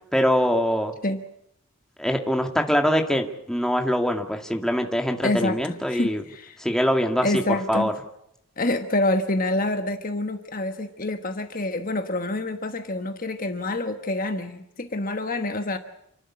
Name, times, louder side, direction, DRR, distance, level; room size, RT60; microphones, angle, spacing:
voice 1, 0.1-0.9 2.0-6.2 6.6-7.9, equal, ahead, 3 dB, 2.1 m, -23 dB
voice 2, 5.2-6.6 7.2-7.9 8.6-15.8, left 2 dB, 40° left, 7 dB, 1.3 m, -27 dB
29.0 x 12.0 x 9.8 m, 0.77 s
head